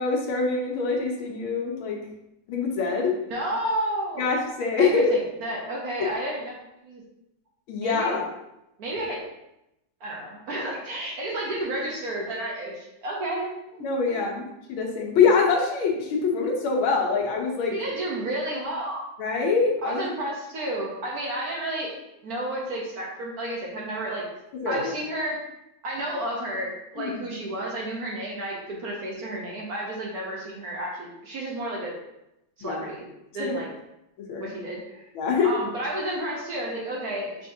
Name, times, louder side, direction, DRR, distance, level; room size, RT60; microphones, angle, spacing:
voice 1, 0.0-2.0 2.5-3.1 4.2-5.2 7.7-8.2 13.8-17.7 19.2-20.1 24.6-24.9 27.0-27.2 32.6-32.8 33.4-33.5 34.3-34.5 35.1-35.6, left 4 dB, 85° left, 0 dB, 1.6 m, -24 dB
voice 2, 3.3-4.3 4.8-6.5 6.8-7.0 7.8-8.2 8.8-9.2 10.0-13.8 14.2-14.3 17.7-19.0 19.8-22.0 22.2-24.3 24.7-25.4 25.8-32.0 32.6-33.0 33.3-33.7 34.4-35.1 35.4-37.5, right 1 dB, 60° right, -3 dB, 1.1 m, -31 dB
5.6 x 3.5 x 2.7 m, 0.87 s
omnidirectional pair, 2.2 m